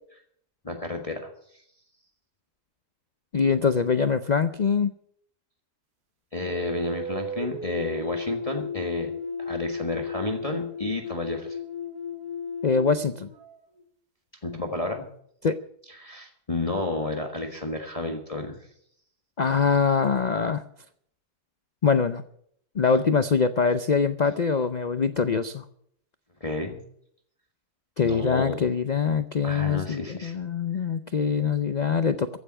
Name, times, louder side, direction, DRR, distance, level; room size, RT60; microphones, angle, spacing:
voice 1, 0.6-1.6 6.3-9.1 9.4-11.6 14.4-15.1 15.9-18.7 26.4-26.8 28.0-28.7 29.4-30.3, left 2 dB, 25° left, 3 dB, 1.5 m, -31 dB
voice 2, 3.3-4.9 12.6-13.3 15.4-15.6 19.4-20.6 21.8-22.2 22.7-25.6 28.0-32.4, left 5 dB, 75° left, 11 dB, 0.4 m, -23 dB
sound 1, 6.5-13.8, left 3 dB, 70° right, 2.4 m, -35 dB
15.0 x 7.0 x 9.9 m, 0.67 s
omnidirectional pair, 1.7 m